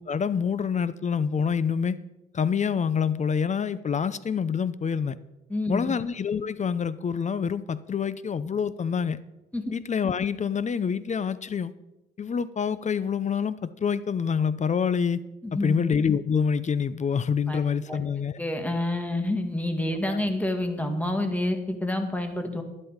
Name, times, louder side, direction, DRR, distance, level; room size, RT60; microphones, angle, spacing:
voice 1, 0.0-2.0 2.3-5.2 5.7-9.2 9.7-11.7 12.2-15.2 15.5-18.4 20.0-20.2, left 6 dB, 35° left, 16 dB, 0.7 m, -26 dB
voice 2, 5.5-5.9 9.5-9.6 15.4-15.8 17.5-17.6 17.9-18.0 18.4-22.6, left 1 dB, 5° left, 5 dB, 2.1 m, -28 dB
12.0 x 11.0 x 5.1 m, 0.95 s
cardioid pair, 90°, 20 cm